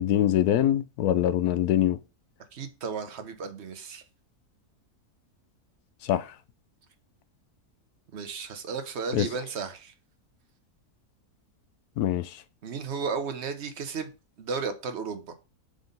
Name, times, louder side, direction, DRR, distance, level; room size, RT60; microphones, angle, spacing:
voice 1, 0.0-2.0 6.0-6.3 9.1-9.3 12.0-12.4, left 11 dB, 80° left, 1.1 m, -24 dB
voice 2, 2.5-4.0 8.1-9.9 12.6-14.1 14.4-15.3, right 5 dB, 50° right, 1.0 m, -34 dB
5.0 x 4.0 x 5.2 m
omnidirectional pair, 1.6 m